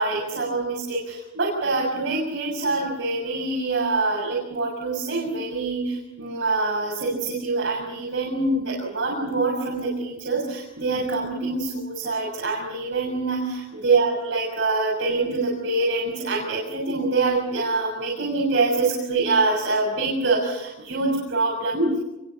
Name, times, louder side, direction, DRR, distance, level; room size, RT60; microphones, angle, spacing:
voice 1, 0.0-22.0, right 3 dB, 60° right, -2 dB, 6.8 m, -25 dB
27.0 x 23.5 x 7.2 m, 0.95 s
head